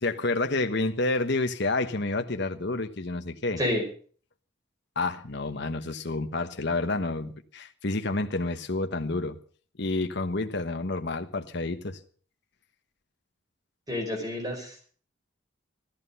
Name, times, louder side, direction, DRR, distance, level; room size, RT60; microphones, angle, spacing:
voice 1, 0.0-3.6 5.0-9.4 9.8-12.0, left 2 dB, 60° left, 1.2 m, -29 dB
voice 2, 13.9-14.8, left 1 dB, 20° right, 5.2 m, -29 dB
14.5 x 13.5 x 5.5 m
head